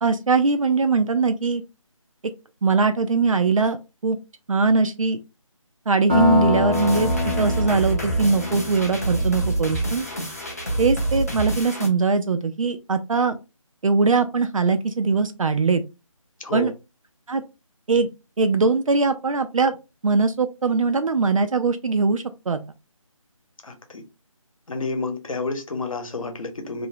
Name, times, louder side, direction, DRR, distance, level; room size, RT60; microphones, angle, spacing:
voice 1, 0.0-1.6 2.6-4.2 4.5-5.2 5.9-7.1 7.4-10.1 10.8-13.4 13.8-15.8 16.5-16.7 17.3-17.4 17.9-18.1 18.4-19.7 20.0-22.6, right 4 dB, 70° right, 9 dB, 0.4 m, -21 dB
sound 1, 6.1-10.4, left 4 dB, 20° right, 0.6 m, -26 dB
sound 2, 6.7-11.9, right 1 dB, 30° left, 0.4 m, -27 dB
voice 2, 23.6-24.0 24.7-26.9, left 3 dB, 70° left, 6 dB, 0.9 m, -29 dB
2.6 x 2.0 x 2.7 m, 0.26 s
figure-of-eight pair, 175°, 18 cm